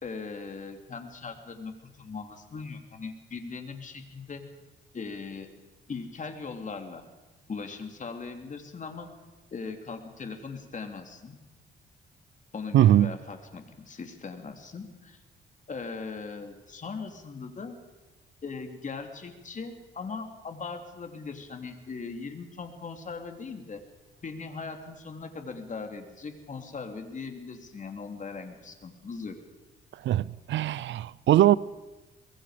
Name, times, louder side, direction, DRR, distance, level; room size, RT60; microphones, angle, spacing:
voice 1, 0.0-4.4 4.9-5.5 5.9-7.0 7.5-9.2 9.5-11.4 12.5-15.2 15.7-17.8 18.4-23.8 24.2-29.4, left 4 dB, 40° left, 3.2 m, -39 dB
voice 2, 12.7-13.1 29.9-31.6, right 12 dB, 70° right, 0.6 m, -21 dB
24.0 x 21.5 x 5.2 m
cardioid pair, 90°, 20 cm